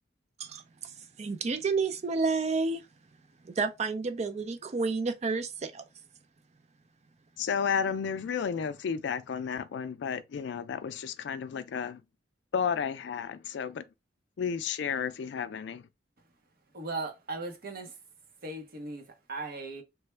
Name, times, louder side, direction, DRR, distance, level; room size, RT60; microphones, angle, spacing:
voice 1, 1.2-2.8 3.4-5.8, right 4 dB, 35° right, 0.4 m, -30 dB
voice 2, 7.4-12.0 12.5-13.8 14.4-15.8, left 6 dB, 65° left, 0.3 m, -32 dB
voice 3, 16.7-18.0 18.4-19.8, right 3 dB, 55° right, 0.8 m, -38 dB
3.3 x 2.1 x 3.2 m
head